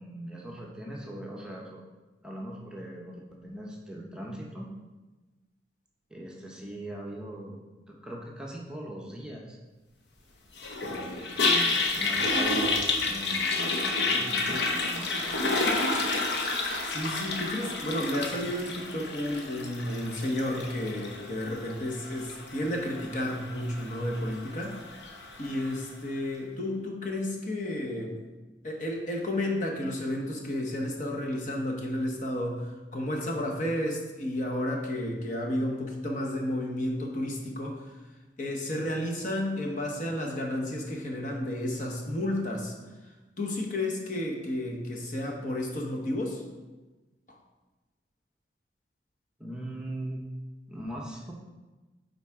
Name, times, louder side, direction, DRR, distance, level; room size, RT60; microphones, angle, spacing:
voice 1, 0.0-1.8 2.2-4.7 6.1-7.6 7.9-9.6 10.9-15.4 49.4-50.2 50.7-51.3, right 1 dB, 5° right, -2 dB, 0.7 m, -40 dB
Toilet flush, 10.6-25.8, left 3 dB, 75° left, 0.8 m, -30 dB
voice 2, 16.8-24.8 25.4-28.2 28.6-37.8 38.4-42.7 43.4-46.4 47.3-47.4, left 1 dB, 45° left, 0 dB, 1.0 m, -32 dB
9.1 x 4.0 x 3.6 m, 1.2 s
head